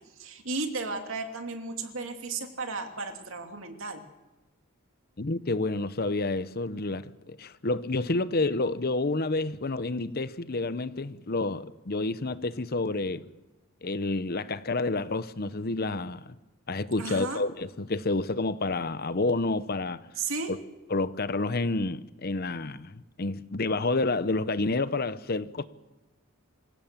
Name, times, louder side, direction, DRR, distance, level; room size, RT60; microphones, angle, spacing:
voice 1, 0.2-4.0 17.0-17.4 20.2-20.5, right 3 dB, 60° right, 2.6 m, -34 dB
voice 2, 5.2-13.3 13.8-16.3 16.7-20.0 20.5-20.6 20.9-25.6, left 2 dB, 45° left, 0.8 m, -29 dB
26.5 x 16.5 x 7.4 m
head